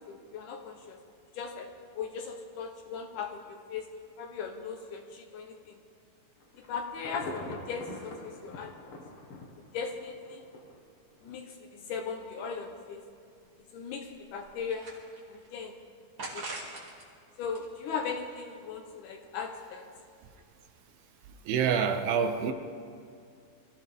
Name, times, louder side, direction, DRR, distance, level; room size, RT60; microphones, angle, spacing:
voice 1, 0.1-1.0 1.3-3.9 4.2-5.8 6.7-9.0 9.6-10.4 11.2-13.0 13.7-14.9 15.3-15.8 16.3-16.6 17.4-19.9, left 5 dB, 70° left, 4 dB, 2.1 m, -38 dB
Insect / Thunder / Rain, 6.4-10.8 11.2-11.3, left 2 dB, 50° left, 1.6 m, -44 dB
sound 1, 13.0-13.1 13.5-13.6 14.1-15.5 16.2-17.1 17.4-18.6, right 2 dB, 35° right, 2.6 m, -43 dB
voice 2, 21.5-22.5, right 7 dB, 75° right, 7 dB, 2.6 m, -26 dB
24.0 x 14.5 x 3.5 m, 2.4 s
omnidirectional pair, 4.4 m